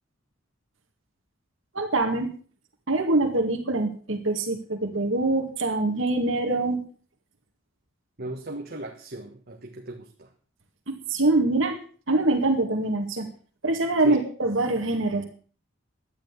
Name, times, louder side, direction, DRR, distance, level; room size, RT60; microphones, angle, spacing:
voice 1, 1.7-2.3 2.9-6.8 10.9-11.8 12.1-13.3 13.6-15.2, right 2 dB, 65° right, 3 dB, 2.0 m, -24 dB
voice 2, 8.2-10.3 14.0-14.2, right 1 dB, 50° right, 3 dB, 1.5 m, -37 dB
12.0 x 10.0 x 6.9 m, 0.43 s
head